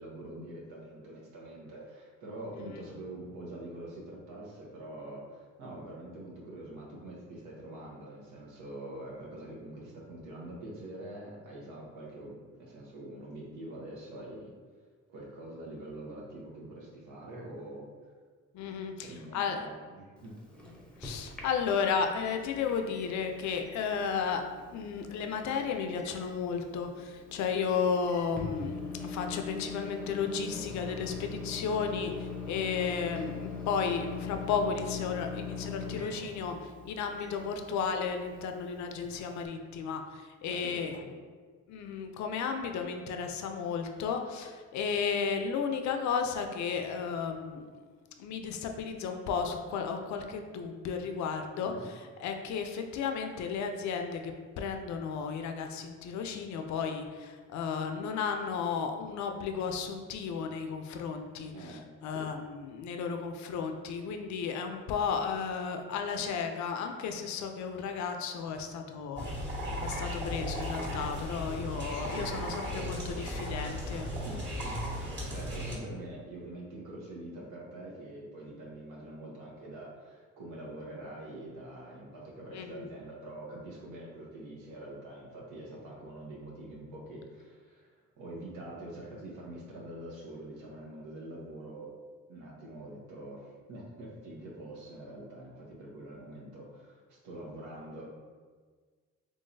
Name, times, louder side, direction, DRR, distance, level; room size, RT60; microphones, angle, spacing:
voice 1, 0.0-14.6 15.1-17.9 19.0-20.3 40.5-41.1 51.6-51.9 61.5-61.8 62.1-62.3 74.2-74.7 75.3-87.9 88.2-91.9 92.3-98.1, right 1 dB, 85° right, -4 dB, 1.0 m, -45 dB
voice 2, 18.5-19.6 21.0-24.4 24.7-41.0 41.7-47.7 48.2-69.3 69.8-74.1 82.5-82.9, left 6 dB, 70° left, 5 dB, 0.5 m, -33 dB
Microwave oven, 20.2-39.5, left 4 dB, 5° left, 0.7 m, -43 dB
sound 1, 69.2-75.8, equal, 35° right, 1.3 m, -36 dB
3.7 x 3.1 x 2.6 m, 1.5 s
cardioid pair, 90°, 30 cm